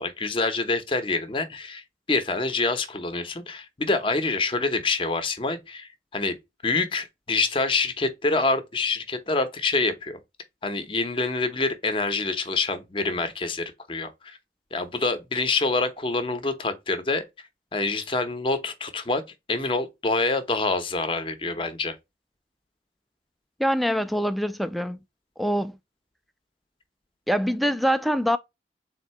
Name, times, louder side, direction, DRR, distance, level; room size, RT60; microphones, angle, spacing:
voice 1, 0.0-6.4 6.6-10.2 10.6-14.4 14.7-17.2 17.7-19.2 19.5-22.0, left 3 dB, 30° left, 0.7 m, -26 dB
voice 2, 23.6-25.0 25.4-25.8 27.3-28.4, equal, ahead, 0.3 m, -24 dB
3.8 x 2.7 x 4.3 m
head